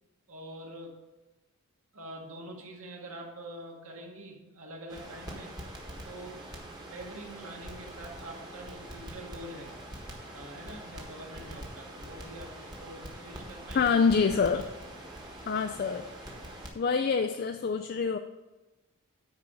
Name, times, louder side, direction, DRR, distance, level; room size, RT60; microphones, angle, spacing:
voice 1, 0.3-1.0 1.9-5.6 6.0-9.8 10.3-14.0, right 1 dB, 70° right, -1 dB, 1.9 m, -45 dB
Crackle, 4.9-16.7, right 1 dB, 20° right, 1.4 m, -44 dB
voice 2, 13.7-14.6 15.5-16.1 16.7-18.2, left 5 dB, 45° left, 6 dB, 0.3 m, -26 dB
9.5 x 4.8 x 6.1 m, 1.1 s
head